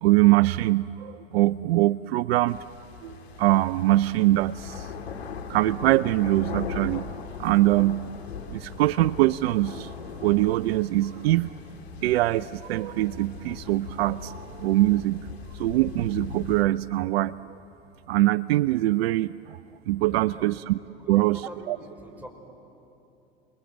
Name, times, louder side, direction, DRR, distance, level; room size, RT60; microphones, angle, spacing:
voice 1, 0.0-2.6 3.0-4.9 5.5-7.1 7.4-8.1 8.5-9.9 10.2-11.5 12.0-15.3 15.5-17.3 18.1-19.6 19.9-20.8 21.1-21.4 21.7-21.8, right 17 dB, 75° right, 19 dB, 0.5 m, -23 dB
sound 1, 2.5-16.6, left 6 dB, 85° left, 1.9 m, -39 dB
voice 2, 20.0-20.5 20.8-22.3, equal, 5° right, 3 dB, 4.8 m, -44 dB
27.5 x 21.5 x 7.9 m, 2.8 s
hypercardioid pair, 90°, 31 cm